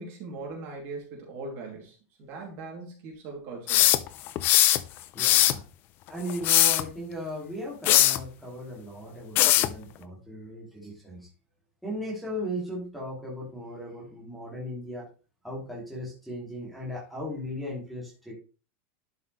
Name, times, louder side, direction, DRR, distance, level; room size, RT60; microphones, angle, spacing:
voice 1, 0.0-4.0, right 3 dB, 35° right, 0 dB, 2.9 m, -40 dB
sound 1, 3.7-4.8 5.2-5.6 6.3-6.8 7.9-8.2 9.4-9.7, left 14 dB, 30° left, 0.5 m, -20 dB
voice 2, 5.1-5.6 6.1-11.3 11.8-15.1 15.4-18.3, equal, ahead, -4 dB, 2.6 m, -37 dB
11.5 x 5.6 x 3.2 m, 0.34 s
supercardioid pair, 175°, 7 cm